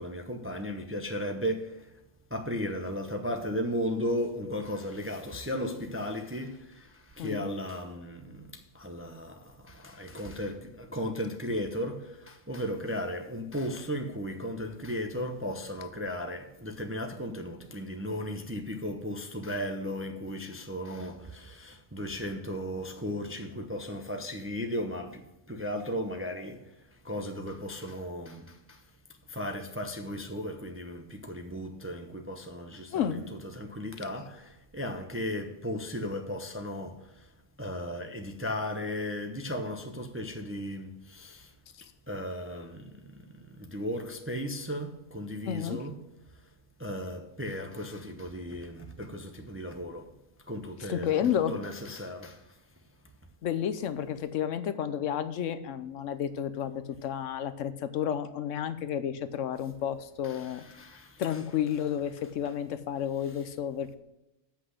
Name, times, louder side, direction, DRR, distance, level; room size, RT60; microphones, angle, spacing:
voice 1, 0.0-1.9 2.3-26.6 27.0-28.8 29.3-37.0 37.6-41.5 42.1-42.9 43.5-46.0 46.8-50.1 50.5-52.4 60.2-61.4 63.3-63.4, equal, 15° right, 0.5 m, -36 dB
voice 2, 32.9-33.2 45.4-45.8 50.9-51.6 53.4-60.6 60.9-64.0, left 9 dB, 80° left, 1.0 m, -31 dB
8.1 x 5.7 x 6.3 m
omnidirectional pair, 1.3 m